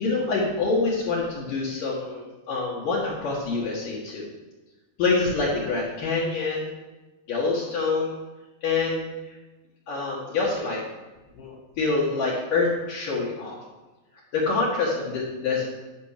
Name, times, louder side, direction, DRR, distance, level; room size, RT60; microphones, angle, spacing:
voice 1, 0.0-4.3 5.0-6.7 7.3-8.1 8.6-9.3 9.9-10.8 11.4-13.6 14.3-15.7, left 3 dB, 55° left, -6 dB, 3.1 m, -26 dB
12.0 x 6.7 x 6.7 m, 1.1 s
omnidirectional pair, 4.9 m